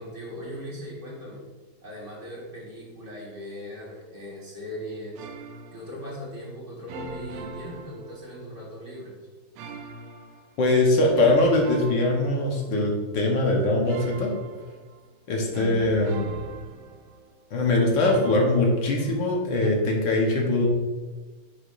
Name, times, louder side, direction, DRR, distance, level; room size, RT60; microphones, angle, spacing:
voice 1, 0.0-1.4 1.8-5.3 5.7-9.1, equal, 40° right, -4 dB, 1.9 m, -39 dB
sound 1, 5.2-6.0 6.9-8.6 9.6-10.6 11.1-12.9 13.9-15.1 15.5-17.4 18.0-19.3 19.6-19.7, right 4 dB, 80° right, 1.4 m, -41 dB
voice 2, 10.6-14.3 15.3-16.2 17.5-20.7, left 2 dB, 70° left, 0 dB, 1.7 m, -22 dB
10.0 x 5.0 x 2.5 m, 1.3 s
omnidirectional pair, 2.2 m